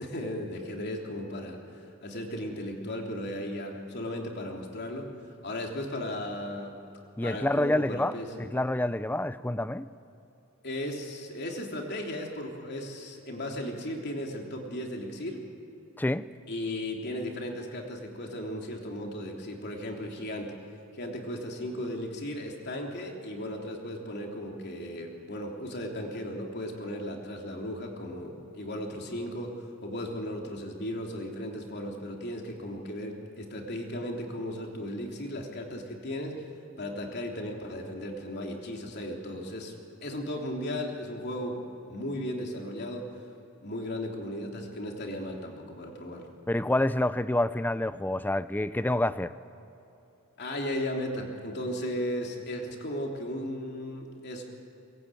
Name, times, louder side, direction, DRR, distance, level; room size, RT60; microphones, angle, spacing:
voice 1, 0.0-5.1 5.4-6.7 7.2-8.4 10.6-15.4 16.5-20.5 20.9-36.5 36.8-39.7 40.0-41.6 41.9-43.1 43.6-46.3 50.4-54.4, left 1 dB, 50° left, 3.3 m, -36 dB
voice 2, 7.2-9.9 16.0-16.3 46.5-49.3, left 1 dB, 10° left, 0.5 m, -28 dB
23.5 x 20.0 x 9.2 m
head